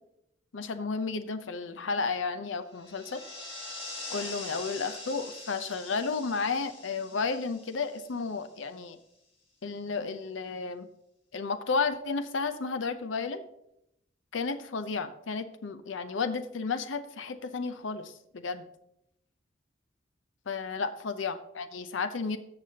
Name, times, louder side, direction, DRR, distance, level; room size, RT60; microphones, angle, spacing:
voice 1, 0.5-3.2 4.1-9.0 9.6-10.9 11.3-13.4 14.3-18.7 20.5-22.4, left 4 dB, 85° left, 10 dB, 0.6 m, -32 dB
sound 1, 2.7-8.6, left 2 dB, 30° left, 3.4 m, -43 dB
13.5 x 6.8 x 2.8 m, 0.80 s
head